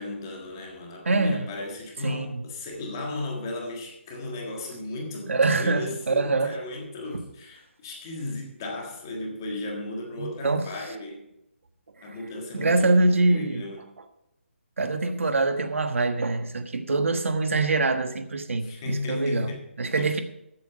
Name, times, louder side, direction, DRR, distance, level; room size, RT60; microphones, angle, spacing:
voice 1, 0.0-11.3 12.0-13.8 18.6-19.7 20.0-20.2, left 2 dB, 15° left, 1.5 m, -35 dB
voice 2, 1.0-1.5 2.0-2.4 5.3-6.6 10.2-10.7 12.5-13.6 14.8-19.5 19.8-20.2, right 3 dB, 85° right, 1.3 m, -24 dB
14.0 x 7.9 x 5.0 m
hypercardioid pair, 180°, 7 cm